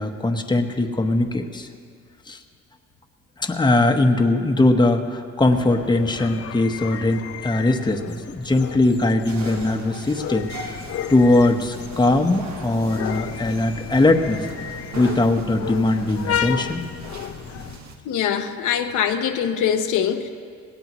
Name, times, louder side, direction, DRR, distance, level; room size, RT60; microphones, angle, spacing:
voice 1, 0.0-1.7 2.3-2.4 3.4-10.8 11.1-14.4 15.0-16.8, left 2 dB, 15° left, 1.0 m, -20 dB
sound 1, 5.4-17.8, left 10 dB, 50° left, 0.5 m, -33 dB
sound 2, 9.3-18.0, right 3 dB, 65° right, 1.5 m, -41 dB
voice 2, 18.1-20.3, left 8 dB, 85° left, 0.9 m, -23 dB
20.0 x 18.0 x 3.1 m
cardioid pair, 90°, 30 cm